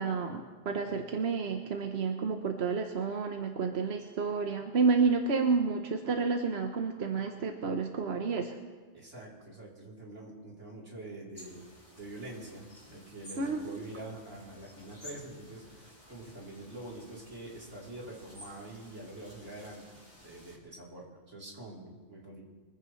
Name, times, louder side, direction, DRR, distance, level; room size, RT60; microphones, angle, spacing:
voice 1, 0.0-8.5 13.4-13.9, right 4 dB, 65° right, 4 dB, 1.1 m, -30 dB
voice 2, 8.9-11.7 12.0-22.5, right 2 dB, 85° right, -4 dB, 3.9 m, -46 dB
sound 1, 11.3-20.6, equal, 35° left, 3.3 m, -54 dB
24.0 x 15.0 x 3.2 m, 1.4 s
omnidirectional pair, 1.2 m